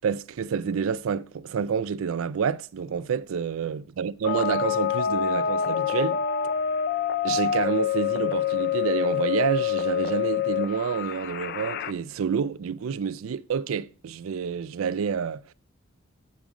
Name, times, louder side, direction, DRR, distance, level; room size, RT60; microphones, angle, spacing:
voice 1, 0.0-6.2 7.2-15.5, right 6 dB, 85° right, 0.4 m, -28 dB
sound 1, 4.2-11.9, left 8 dB, 50° left, 0.4 m, -26 dB
8.6 x 3.8 x 4.8 m
head